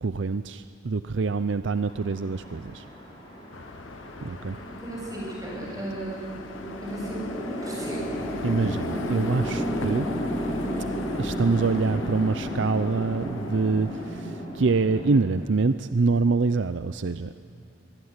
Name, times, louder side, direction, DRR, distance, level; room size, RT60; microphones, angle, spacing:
voice 1, 0.0-2.8 4.2-4.6 8.4-10.1 11.2-17.3, right 4 dB, 65° right, 11 dB, 0.6 m, -25 dB
Chatter / Traffic noise roadway noise / Train, 1.8-15.2, equal, 25° left, 6.4 m, -33 dB
sound 1, 3.5-14.2, left 3 dB, 75° left, 1.0 m, -43 dB
voice 2, 4.8-6.3 6.8-7.3 7.6-8.1, right 1 dB, 20° right, -3 dB, 7.7 m, -35 dB
24.0 x 20.5 x 9.7 m, 2.8 s
head